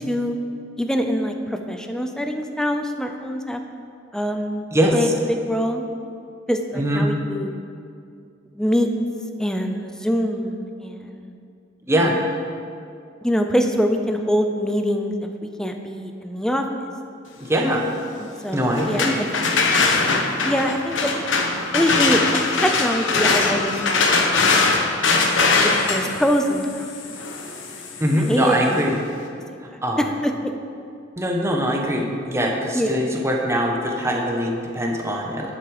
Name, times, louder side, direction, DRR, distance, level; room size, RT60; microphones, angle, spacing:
voice 1, 0.8-3.6 4.1-4.6 4.9-5.8 6.5-7.5 8.5-8.9 9.4-11.3 12.0-12.2 13.2-16.9 18.4-19.3 20.4-21.1 21.7-24.5 25.6-26.9 27.7-27.8 28.3-28.8 29.5-29.6 30.0-30.3 32.7-33.0, equal, 5° left, 5 dB, 0.6 m, -24 dB
voice 2, 4.7-5.1 6.8-7.1 11.9-12.2 17.4-17.8 18.5-19.2 28.0-29.0 29.8-30.1 31.2-35.5, equal, 15° right, 0 dB, 1.1 m, -22 dB
sound 1, 18.7-28.5, left 3 dB, 90° left, 1.1 m, -21 dB
11.0 x 8.0 x 4.9 m, 2.4 s
head